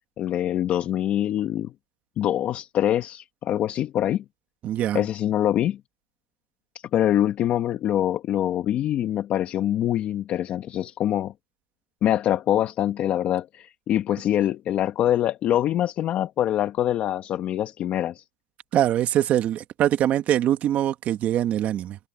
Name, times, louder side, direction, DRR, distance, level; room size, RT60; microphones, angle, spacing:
voice 1, 0.2-1.7 2.2-4.2 4.9-5.8 6.9-11.3 12.0-18.2, left 11 dB, 25° left, 1.3 m, -24 dB
voice 2, 4.6-5.0 18.7-22.0, right 11 dB, 30° right, 1.7 m, -23 dB
supercardioid pair, 150°, 5 cm